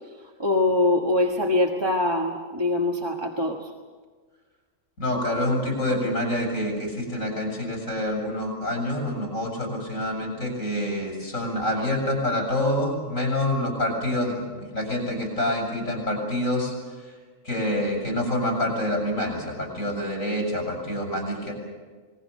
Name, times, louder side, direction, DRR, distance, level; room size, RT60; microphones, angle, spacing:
voice 1, 0.4-3.7, left 2 dB, 20° right, 1 dB, 1.4 m, -23 dB
voice 2, 5.0-17.1 17.4-21.5, left 1 dB, 80° left, 2 dB, 6.8 m, -27 dB
26.5 x 21.0 x 6.5 m, 1.5 s
omnidirectional pair, 1.4 m